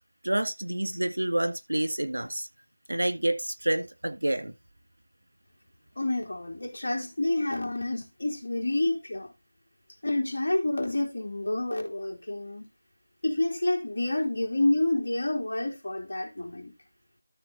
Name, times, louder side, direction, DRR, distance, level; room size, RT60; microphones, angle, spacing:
voice 1, 0.2-2.5 2.9-4.5, right 1 dB, 90° right, 2.0 m, -28 dB
voice 2, 6.0-9.3 10.0-12.7 13.2-16.7, left 2 dB, 70° left, 3.6 m, -28 dB
13.0 x 4.8 x 4.1 m
figure-of-eight pair, 170°, 0 cm